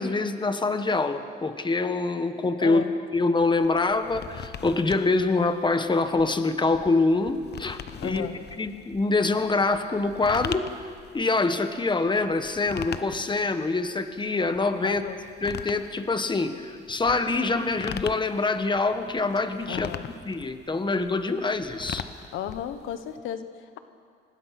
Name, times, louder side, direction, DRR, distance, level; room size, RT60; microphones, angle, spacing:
voice 1, 0.0-2.8 3.1-8.3 8.6-10.7 11.1-15.0 15.4-22.0, left 3 dB, 25° left, 9 dB, 1.5 m, -25 dB
voice 2, 2.6-2.9 8.0-8.4 14.8-15.2 19.7-20.1 22.3-23.8, left 10 dB, 90° left, 10 dB, 1.2 m, -34 dB
sound 1, 3.4-23.2, left 8 dB, 55° left, 1.0 m, -41 dB
25.5 x 19.5 x 6.0 m, 2.1 s
cardioid pair, 90°, 20 cm